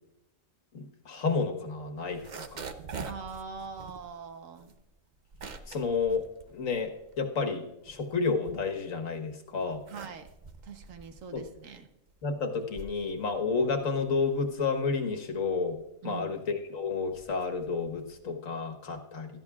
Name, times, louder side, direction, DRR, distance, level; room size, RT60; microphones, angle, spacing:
voice 1, 0.7-2.2 2.5-2.6 5.7-6.2 6.5-6.9 7.2-9.8 11.3-11.4 12.2-15.8 16.0-19.3, left 4 dB, 90° left, 5 dB, 1.7 m, -30 dB
sound 1, 2.0-7.3 7.7-9.1 9.6-18.3, right 5 dB, 45° right, 0.7 m, -46 dB
voice 2, 3.0-4.8 9.9-10.3 10.6-11.9 16.0-16.4, right 5 dB, 80° right, 7 dB, 1.4 m, -42 dB
16.5 x 13.0 x 2.4 m, 0.90 s
omnidirectional pair, 1.3 m